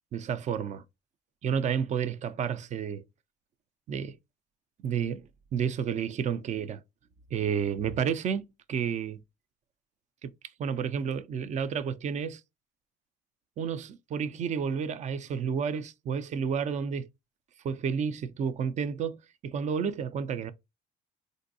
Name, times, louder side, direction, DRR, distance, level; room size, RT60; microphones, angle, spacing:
voice 1, 0.1-0.8 1.4-3.0 3.9-4.2 4.8-6.8 7.3-9.2 10.2-10.3 10.6-12.4 13.6-17.1 17.6-19.2 19.4-20.5, right 7 dB, 45° right, 0.5 m, -31 dB
3.8 x 2.6 x 2.6 m
cardioid pair, 110°, 17 cm